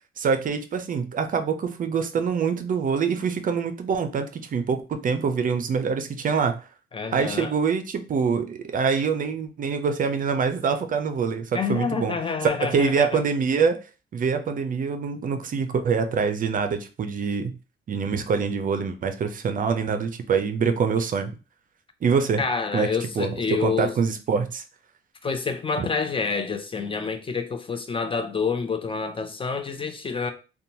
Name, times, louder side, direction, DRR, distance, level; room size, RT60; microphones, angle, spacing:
voice 1, 0.2-6.6 7.1-12.2 12.6-13.8 14.1-17.5 17.9-21.3 22.0-22.4 22.7-22.9 23.2-24.6 25.8-25.9, right 5 dB, 45° right, 0.4 m, -25 dB
voice 2, 6.9-7.5 11.5-13.2 22.4-23.9 25.2-30.3, left 5 dB, 25° left, 0.4 m, -28 dB
2.8 x 2.2 x 2.7 m
cardioid pair, 90°, 20 cm